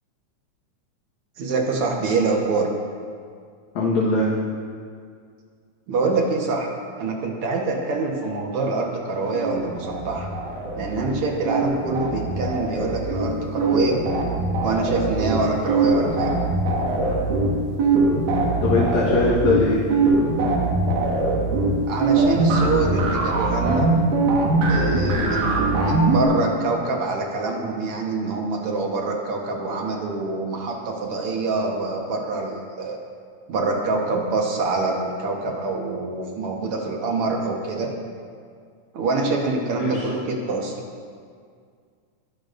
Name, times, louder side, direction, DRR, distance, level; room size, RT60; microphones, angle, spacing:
voice 1, 1.4-2.7 5.9-10.3 10.8-14.0 14.6-16.3 21.9-23.9 24.7-33.0 33.5-37.9 38.9-40.8, right 3 dB, 55° right, 0 dB, 1.8 m, -25 dB
voice 2, 3.8-4.3 18.6-19.8 25.1-25.4 39.8-40.1, left 3 dB, 65° left, -6 dB, 2.6 m, -21 dB
sound 1, 9.4-11.2 11.5-26.2, right 2 dB, 80° right, 3.1 m, -22 dB
21.5 x 12.0 x 2.6 m, 2.1 s
omnidirectional pair, 3.6 m